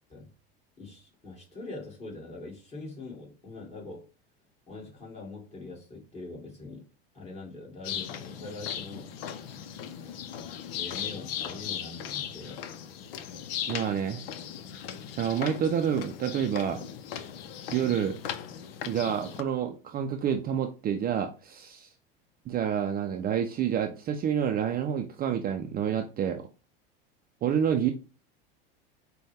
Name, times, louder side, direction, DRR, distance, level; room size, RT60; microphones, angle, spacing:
voice 1, 0.8-4.1 4.7-6.9 7.1-9.1 10.0-10.3 10.7-12.7, left 2 dB, 20° left, 2.2 m, -43 dB
sound 1, 7.8-19.4, left 9 dB, 80° left, 0.6 m, -38 dB
voice 2, 13.7-14.2 15.2-16.9 17.7-18.2 18.9-21.9 22.5-26.4 27.4-27.9, right 8 dB, 30° right, 0.5 m, -28 dB
5.4 x 2.3 x 3.3 m
supercardioid pair, 105°, 29 cm